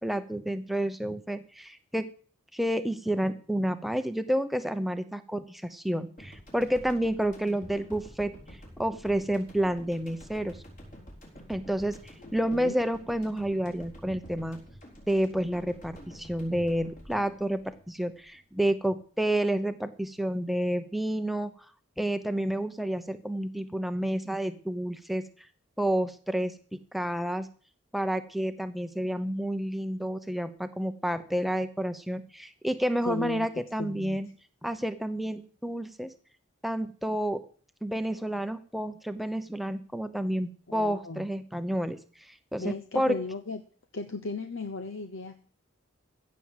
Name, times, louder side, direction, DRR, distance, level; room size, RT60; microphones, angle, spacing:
voice 1, 0.0-2.1 2.5-8.3 8.8-10.6 11.5-14.6 15.1-21.5 22.0-25.2 25.8-26.5 26.9-27.5 27.9-34.3 34.6-36.1 36.6-37.4 37.8-42.0 42.3-43.2, right 1 dB, ahead, 10 dB, 0.8 m, -30 dB
sound 1, 6.2-18.6, equal, 40° left, 4.5 m, -48 dB
voice 2, 12.2-12.8 33.0-33.5 33.8-34.2 40.7-41.3 42.6-43.6 43.9-45.4, left 3 dB, 70° left, 8 dB, 0.9 m, -36 dB
15.5 x 6.3 x 7.3 m, 0.43 s
head